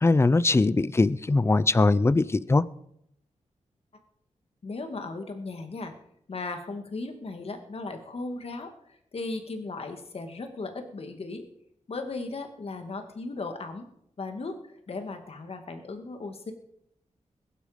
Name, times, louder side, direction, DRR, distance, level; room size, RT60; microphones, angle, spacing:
voice 1, 0.0-2.6, left 3 dB, 20° left, 18 dB, 0.5 m, -21 dB
voice 2, 4.6-5.9 6.3-11.5 11.9-13.9 14.2-16.5, left 3 dB, 50° left, 6 dB, 2.1 m, -36 dB
21.0 x 11.5 x 5.2 m, 0.75 s
wide cardioid pair, 140°, 13 cm